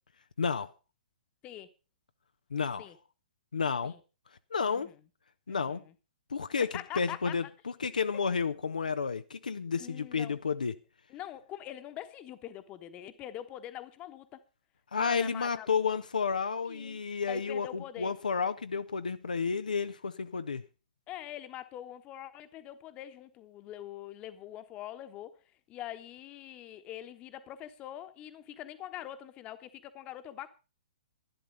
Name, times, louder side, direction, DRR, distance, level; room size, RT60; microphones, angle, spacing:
voice 1, 0.4-0.7 2.5-2.9 3.5-3.9 4.5-4.9 5.5-5.8 6.3-6.7 6.9-10.7 14.9-20.6, left 5 dB, 70° left, 0.7 m, -31 dB
voice 2, 4.6-5.0 5.5-5.9 6.6-7.5 9.8-10.4 11.1-14.4 15.0-16.0 16.6-18.1 21.1-25.3 25.7-30.5, left 12 dB, 25° left, 1.2 m, -44 dB
11.5 x 11.5 x 5.3 m
figure-of-eight pair, 115°, 5 cm